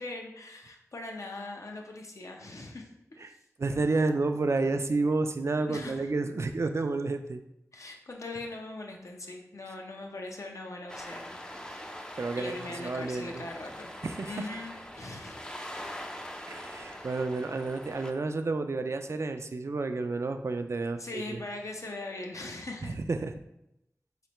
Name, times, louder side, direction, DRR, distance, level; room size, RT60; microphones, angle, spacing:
voice 1, 0.0-2.9 3.3-3.4 5.7-6.1 7.7-12.1 12.3-13.9 14.2-15.4 21.0-23.0, left 2 dB, 65° left, 1 dB, 0.6 m, -41 dB
voice 2, 3.6-7.4 12.1-13.5 14.0-14.4 16.5-21.4 23.1-23.3, right 3 dB, 55° right, 7 dB, 0.3 m, -30 dB
sound 1, 10.9-18.1, equal, 15° left, 0.4 m, -43 dB
4.1 x 3.2 x 2.9 m, 0.84 s
wide cardioid pair, 60°, 6 cm